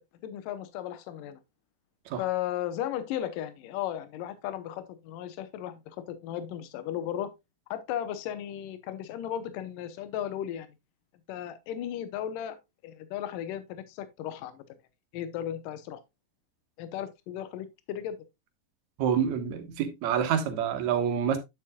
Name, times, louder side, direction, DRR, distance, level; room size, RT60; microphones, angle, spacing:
voice 1, 0.2-1.4 2.2-7.3 7.7-10.7 11.3-12.6 12.8-14.6 15.1-16.0 16.8-18.2, left 11 dB, 80° left, 2.5 m, -35 dB
voice 2, 19.0-21.4, right 8 dB, 60° right, 2.4 m, -27 dB
9.5 x 7.5 x 2.3 m
omnidirectional pair, 4.0 m